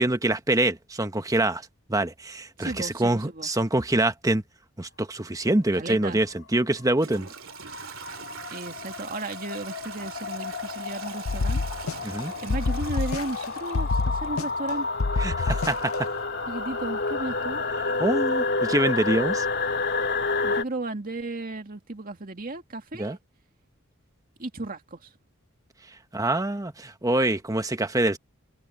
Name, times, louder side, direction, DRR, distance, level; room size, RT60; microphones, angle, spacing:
voice 1, 0.0-1.6 1.9-4.4 4.8-7.3 12.0-12.3 15.2-16.1 18.0-19.4 23.0-23.2 26.1-28.2, right 1 dB, 15° right, 1.2 m, -25 dB
voice 2, 2.6-3.5 5.7-6.2 8.5-11.6 12.4-14.9 16.5-17.6 20.4-23.2 24.4-25.1, right 2 dB, 45° right, 2.2 m, -34 dB
sound 1, 5.7-20.6, left 3 dB, 55° left, 2.6 m, -30 dB
Toilet flush / Trickle dribble, 6.9-14.7, right 7 dB, 75° right, 2.8 m, -43 dB
sound 2, 11.2-12.2 12.5-13.5 13.7-14.7 15.0-16.0, left 3 dB, 90° left, 0.7 m, -27 dB
head